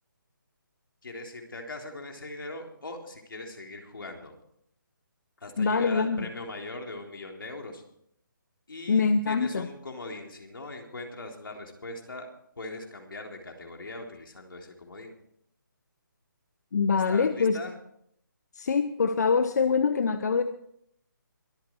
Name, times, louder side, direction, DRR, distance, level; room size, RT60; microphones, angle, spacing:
voice 1, 1.0-4.3 5.4-7.8 8.7-12.3 12.6-15.1 16.9-17.7, left 2 dB, 80° left, 2 dB, 3.5 m, -40 dB
voice 2, 5.6-6.3 8.9-9.7 16.7-17.6 18.5-20.4, left 5 dB, 50° left, 10 dB, 0.8 m, -24 dB
23.0 x 9.1 x 4.6 m, 0.70 s
hypercardioid pair, 165°, 11 cm